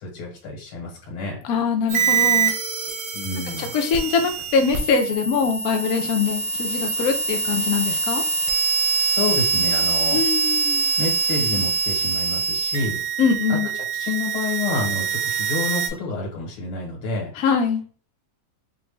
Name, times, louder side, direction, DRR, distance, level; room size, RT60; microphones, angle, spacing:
voice 1, 0.0-1.4 3.1-3.7 9.0-10.2 11.0-13.0 13.5-13.6 14.0-17.3, left 3 dB, 85° left, -2 dB, 1.9 m, -28 dB
voice 2, 1.4-2.5 3.6-8.2 10.1-10.9 13.2-13.7 17.4-17.8, left 6 dB, 65° left, 5 dB, 0.9 m, -23 dB
sound 1, 1.9-15.9, right 5 dB, 80° right, 1.8 m, -24 dB
4.9 x 2.6 x 3.3 m, 0.40 s
omnidirectional pair, 2.3 m